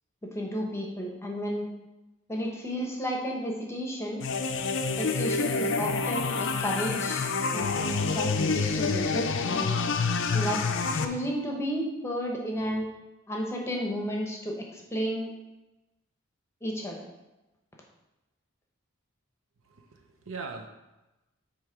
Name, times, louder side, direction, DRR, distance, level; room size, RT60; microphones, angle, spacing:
voice 1, 0.2-1.7 2.3-4.2 5.0-9.8 10.3-10.7 10.9-12.9 13.3-15.3 16.6-17.1, equal, 10° left, -1 dB, 0.9 m, -32 dB
sound 1, 4.2-11.0, left 4 dB, 60° left, 0.5 m, -28 dB
voice 2, 19.6-20.7, right 4 dB, 65° right, 3 dB, 0.9 m, -40 dB
7.8 x 3.2 x 5.0 m, 1.0 s
head